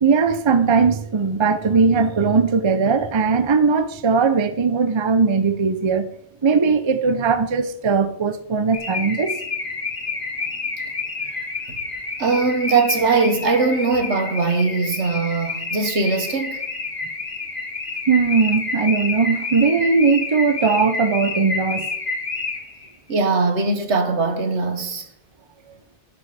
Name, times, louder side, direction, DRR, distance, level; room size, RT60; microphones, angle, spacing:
voice 1, 0.0-6.1 6.4-9.4 18.1-21.9, right 5 dB, 30° right, 0.6 m, -19 dB
Car / Alarm, 8.7-22.9, left 4 dB, 50° left, 1.9 m, -29 dB
voice 2, 12.2-16.6 23.1-25.0, right 4 dB, 80° right, 1.7 m, -20 dB
12.5 x 9.8 x 4.2 m
omnidirectional pair, 1.2 m